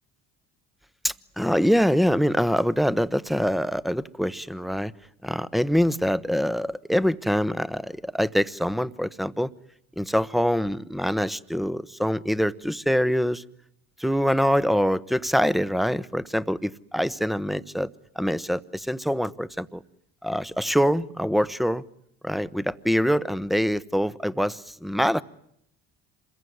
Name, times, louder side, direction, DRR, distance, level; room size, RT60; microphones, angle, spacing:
voice 1, 1.0-4.9 5.2-9.5 10.0-13.4 14.0-17.9 18.1-19.8 20.2-21.8 22.2-25.2, equal, ahead, 16 dB, 1.1 m, -24 dB
27.0 x 22.5 x 9.6 m, 0.73 s
hypercardioid pair, 70°, 39 cm